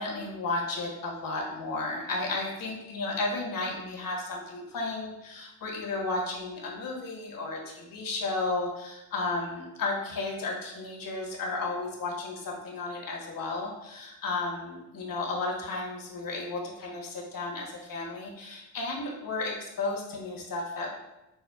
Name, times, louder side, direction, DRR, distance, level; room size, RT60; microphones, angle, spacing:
voice 1, 0.0-21.0, left 3 dB, 50° left, -1 dB, 1.1 m, -33 dB
5.7 x 2.1 x 2.3 m, 0.92 s
supercardioid pair, 60°, 45 cm